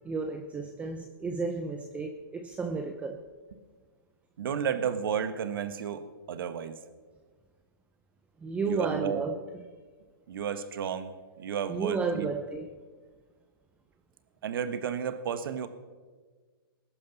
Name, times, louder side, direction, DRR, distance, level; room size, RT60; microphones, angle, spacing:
voice 1, 0.0-3.2 8.4-9.3 11.7-12.7, right 4 dB, 10° right, 6 dB, 0.7 m, -32 dB
voice 2, 4.4-6.8 8.7-9.3 10.3-11.1 11.4-12.3 14.4-15.7, right 7 dB, 65° right, 10 dB, 1.3 m, -32 dB
20.5 x 11.5 x 4.0 m, 1.4 s
hypercardioid pair, 145°, 12 cm